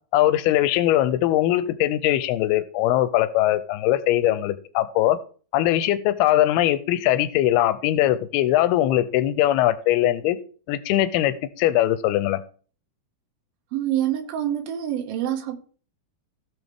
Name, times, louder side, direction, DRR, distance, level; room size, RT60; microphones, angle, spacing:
voice 1, 0.1-5.2 5.5-10.4 10.7-12.4, left 13 dB, 90° left, 2.6 m, -21 dB
voice 2, 13.7-15.6, right 11 dB, 70° right, 2.8 m, -26 dB
16.5 x 6.4 x 3.5 m
omnidirectional pair, 4.5 m